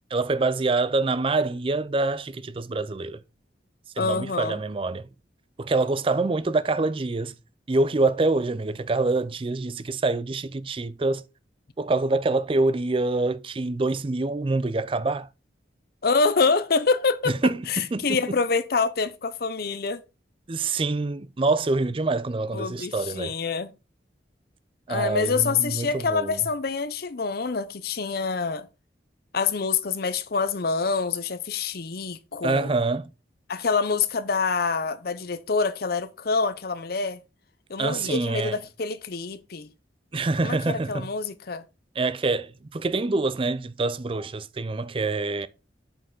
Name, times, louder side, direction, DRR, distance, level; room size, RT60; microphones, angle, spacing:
voice 1, 0.1-3.2 4.0-5.1 5.6-7.3 7.7-11.2 11.8-15.3 17.3-18.2 20.5-23.3 24.9-26.4 32.4-33.1 37.8-38.6 40.1-41.1 42.0-45.5, right 3 dB, 30° right, 0.4 m, -26 dB
voice 2, 4.0-4.6 16.0-17.3 17.7-20.0 22.5-23.7 24.9-28.7 29.3-32.7 33.5-37.2 37.7-39.7 40.4-41.6, left 4 dB, 55° left, 0.7 m, -26 dB
7.8 x 5.5 x 3.9 m
head